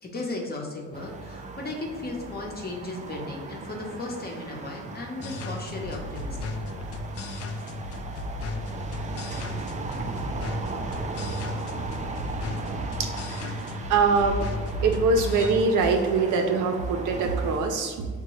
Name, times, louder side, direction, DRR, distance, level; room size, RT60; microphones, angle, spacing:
voice 1, 0.0-6.5, left 2 dB, 30° left, -1 dB, 0.9 m, -35 dB
sound 1, 0.9-17.6, right 3 dB, 25° right, 0.4 m, -37 dB
sound 2, 5.2-15.7, left 2 dB, 50° left, 0.4 m, -35 dB
voice 2, 13.0-14.5 14.8-18.1, right 4 dB, 85° right, 4 dB, 0.6 m, -24 dB
6.6 x 2.2 x 3.0 m, 1.5 s
cardioid pair, 90°, 30 cm